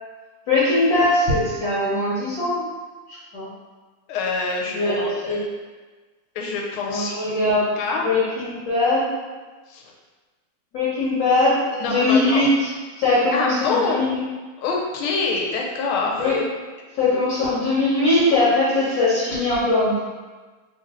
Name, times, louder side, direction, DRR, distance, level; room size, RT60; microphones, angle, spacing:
voice 1, 0.5-2.6 3.3-3.5 4.7-5.4 6.9-7.7 7.9-9.1 10.7-12.7 13.0-14.2 16.2-16.4 16.9-20.0, left 2 dB, 60° left, -10 dB, 1.5 m, -20 dB
voice 2, 4.1-5.5 6.3-7.1 7.8-8.1 9.7-9.8 11.7-12.4 13.3-14.1 14.6-16.3, left 4 dB, 85° left, 0 dB, 1.5 m, -25 dB
3.5 x 2.5 x 3.9 m, 1.3 s
omnidirectional pair, 2.3 m